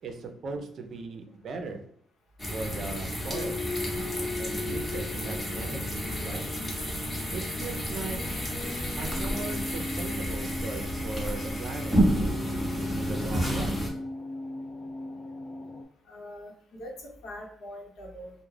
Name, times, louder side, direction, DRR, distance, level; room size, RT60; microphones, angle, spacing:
voice 1, 0.0-1.9 2.5-6.4 7.3-8.2 9.0-12.6 13.0-13.8, right 3 dB, 60° right, 5 dB, 0.5 m, -39 dB
sound 1, 2.4-13.9, equal, 20° left, 0.8 m, -31 dB
sound 2, 3.3-15.8, left 2 dB, 35° left, 0.4 m, -38 dB
voice 2, 16.1-18.3, left 1 dB, 75° left, 0 dB, 0.8 m, -43 dB
2.3 x 2.1 x 3.2 m, 0.65 s
cardioid pair, 90°, 0 cm